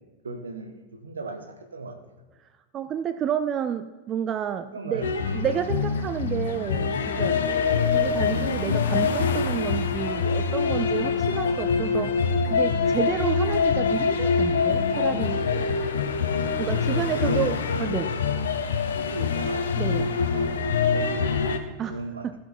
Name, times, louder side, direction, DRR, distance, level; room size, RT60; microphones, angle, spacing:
voice 1, 0.2-2.0 4.7-5.1 16.8-17.6 18.9-19.7 19.9-21.6 21.9-22.3, right 2 dB, 75° right, 7 dB, 1.2 m, -36 dB
voice 2, 2.7-5.0 5.3-7.4 7.9-15.5 16.6-18.1 19.8-20.1 21.8-22.0 22.2-22.4, right 9 dB, 30° right, 11 dB, 0.4 m, -30 dB
sound 1, 5.0-21.6, left 5 dB, 65° left, 0.9 m, -25 dB
15.5 x 5.9 x 4.5 m, 1.3 s
figure-of-eight pair, 90°, 0 cm